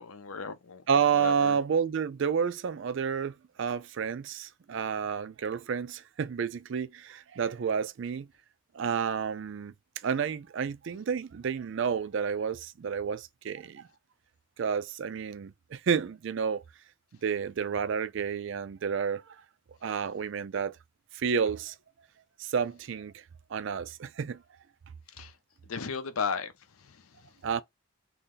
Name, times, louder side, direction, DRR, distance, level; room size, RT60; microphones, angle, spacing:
voice 1, 0.0-0.8 1.1-1.6 25.1-25.3 25.6-27.3, left 5 dB, 85° left, 0.7 m, -36 dB
voice 2, 0.9-8.3 8.7-9.7 10.0-13.9 14.6-16.6 17.2-19.4 19.8-20.7 21.1-21.8 22.4-23.2 23.5-24.4 27.4-27.6, right 6 dB, 60° right, 0.3 m, -30 dB
3.0 x 2.8 x 3.7 m
head